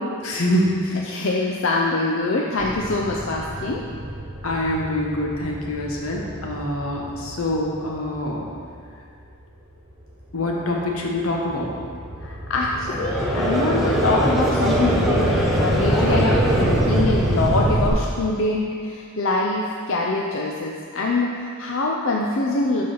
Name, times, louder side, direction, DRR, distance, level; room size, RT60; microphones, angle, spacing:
voice 1, 0.2-1.0 4.4-8.4 10.3-11.7, left 1 dB, 85° left, -1 dB, 1.2 m, -25 dB
voice 2, 0.9-3.8 12.2-22.8, left 2 dB, 60° left, -2 dB, 0.5 m, -24 dB
sound 1, 2.6-9.3 9.9-17.9, right 1 dB, 60° right, 1.1 m, -28 dB
Conversation / Crowd, 12.8-18.1, right 1 dB, ahead, 0.8 m, -23 dB
11.5 x 4.2 x 4.0 m, 2.2 s
head